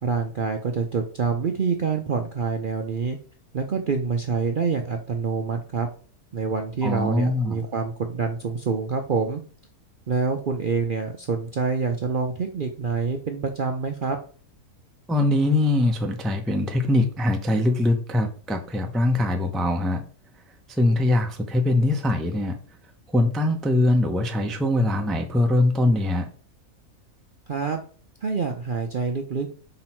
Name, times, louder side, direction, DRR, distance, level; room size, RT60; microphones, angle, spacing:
voice 1, 0.0-3.2 3.5-5.9 6.3-9.4 10.1-14.2 27.5-27.8 28.2-29.5, right 5 dB, 55° right, 0.6 m, -26 dB
voice 2, 6.8-7.6 15.1-20.0 20.7-22.6 23.1-26.3, left 1 dB, ahead, 0.4 m, -22 dB
6.0 x 3.9 x 4.4 m
omnidirectional pair, 1.6 m